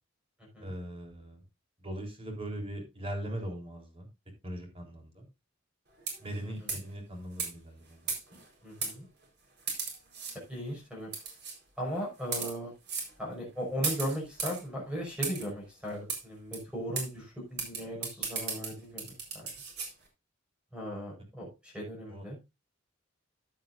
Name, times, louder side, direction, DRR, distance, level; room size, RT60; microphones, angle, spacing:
voice 1, 0.6-1.4 1.8-4.1 4.4-5.3 6.2-8.1 22.1-22.3, right 1 dB, 30° right, 2 dB, 3.6 m, -40 dB
sound 1, 6.0-6.3 6.7-6.9 7.4-7.5 8.1-8.4 8.8-8.9 9.7-10.3 11.1-11.5 12.2-12.5 12.9-13.1 13.8-14.6 15.2-15.4 16.1-16.2 16.5-16.6 16.9-17.1 17.6-19.9, right 5 dB, 55° right, 4.2 m, -35 dB
voice 2, 6.4-6.8 8.6-9.1 10.5-11.1 11.8-12.7 13.2-19.5 20.7-22.4, equal, 5° right, -2 dB, 5.5 m, -37 dB
14.0 x 8.8 x 2.6 m, 0.24 s
head